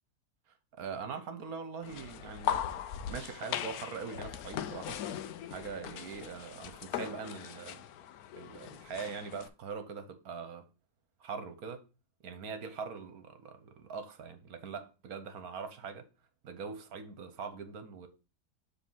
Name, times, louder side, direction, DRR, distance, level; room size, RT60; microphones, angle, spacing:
voice 1, 0.7-2.8 3.1-5.0 5.5-7.8 8.3-10.7 11.2-11.8 12.2-16.1 16.4-18.1, right 5 dB, 70° right, 1.4 m, -42 dB
sound 1, 1.8-9.5, left 9 dB, 70° left, 1.0 m, -39 dB
7.5 x 3.5 x 5.6 m
omnidirectional pair, 1.7 m